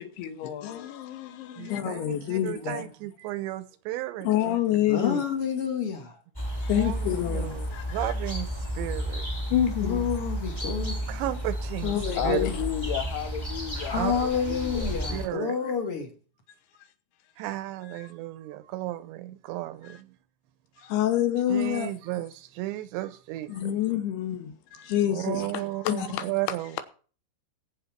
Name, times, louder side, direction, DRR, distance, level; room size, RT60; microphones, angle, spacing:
voice 1, 0.0-0.7 1.7-2.9 4.2-5.2 6.7-7.6 9.5-10.1 11.8-12.6 20.9-21.9 23.5-24.6 24.8-25.5 25.9-26.1, left 11 dB, 70° left, 2.8 m, -27 dB
voice 2, 0.6-1.8 6.6-6.9 7.7-8.1 12.1-14.9 17.9-18.1 19.8-20.0 20.8-20.9 24.7-25.0 25.5-26.3, left 10 dB, 90° left, 3.5 m, -35 dB
voice 3, 1.6-4.5 6.7-9.3 11.1-12.4 13.9-14.1 15.1-15.6 17.4-20.2 20.8-20.9 21.5-23.7 25.1-26.8, right 16 dB, 80° right, 2.9 m, -34 dB
voice 4, 4.9-6.2 9.8-11.1 13.8-16.1, left 7 dB, 50° left, 1.7 m, -29 dB
sound 1, 6.3-15.3, equal, 10° left, 1.5 m, -32 dB
20.0 x 7.9 x 4.5 m
omnidirectional pair, 5.3 m